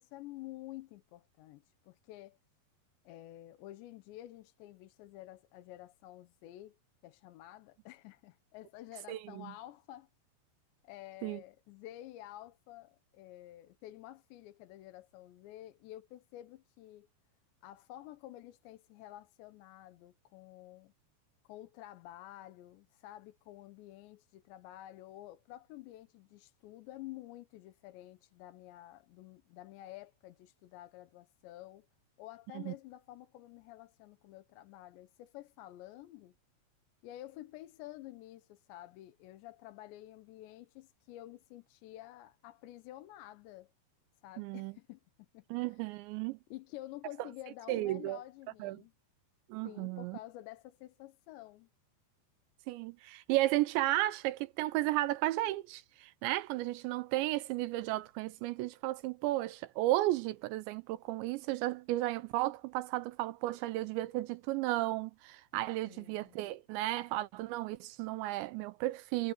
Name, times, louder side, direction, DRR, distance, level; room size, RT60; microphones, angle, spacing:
voice 1, 0.0-2.4 3.0-6.8 7.0-10.1 10.8-17.1 17.6-20.9 21.5-31.9 32.2-36.3 37.0-43.7 44.2-45.9 46.5-48.9 49.6-51.7 65.8-66.5, left 15 dB, 80° left, 3.2 m, -50 dB
voice 2, 9.1-9.5 11.2-11.4 32.6-32.7 44.4-44.7 45.5-46.4 47.7-48.2 48.6-48.8 49.5-50.2 52.7-69.3, right 17 dB, 80° right, 2.9 m, -34 dB
omnidirectional pair, 5.3 m